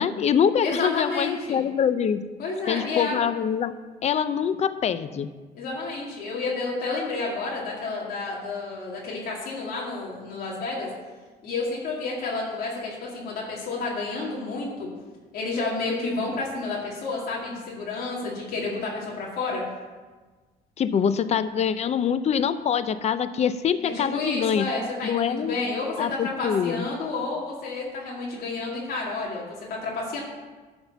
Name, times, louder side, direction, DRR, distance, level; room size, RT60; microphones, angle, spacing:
voice 1, 0.0-2.2 2.7-3.7 4.0-5.3 20.8-24.6 25.0-25.5 26.0-26.9, left 8 dB, 40° left, 13 dB, 0.5 m, -24 dB
voice 2, 0.6-1.6 2.4-3.2 5.5-10.9 11.4-14.9 15.3-19.6 23.9-30.2, left 3 dB, 65° left, -4 dB, 2.1 m, -30 dB
11.0 x 4.4 x 6.8 m, 1.3 s
cardioid pair, 110°, 17 cm